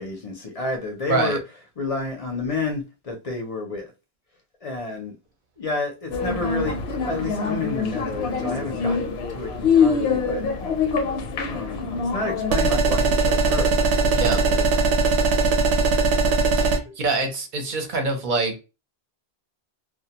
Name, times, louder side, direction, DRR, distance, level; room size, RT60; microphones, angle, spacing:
voice 1, 0.0-1.4 1.8-3.9 4.6-5.2 5.6-10.4 11.5-13.8 14.0-14.7, left 3 dB, 45° left, 0.5 m, -30 dB
sound 1, 6.1-12.5, left 5 dB, 75° left, 0.8 m, -24 dB
sound 2, 12.5-16.8, right 4 dB, 85° right, 0.8 m, -20 dB
voice 2, 14.1-14.4 16.6-16.7 17.0-18.6, right 3 dB, 55° right, 0.8 m, -24 dB
2.2 x 2.2 x 2.7 m
omnidirectional pair, 1.1 m